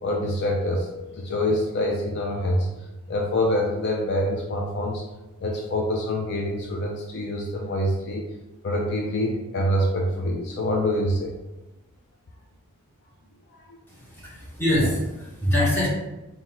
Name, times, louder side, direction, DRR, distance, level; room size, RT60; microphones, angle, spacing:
voice 1, 0.0-5.0 5.4-8.2 8.6-11.3 13.5-13.8, left 1 dB, 50° left, 0 dB, 0.5 m, -26 dB
voice 2, 13.9-15.9, left 1 dB, 10° left, -7 dB, 1.2 m, -24 dB
4.1 x 2.3 x 3.9 m, 1.0 s
head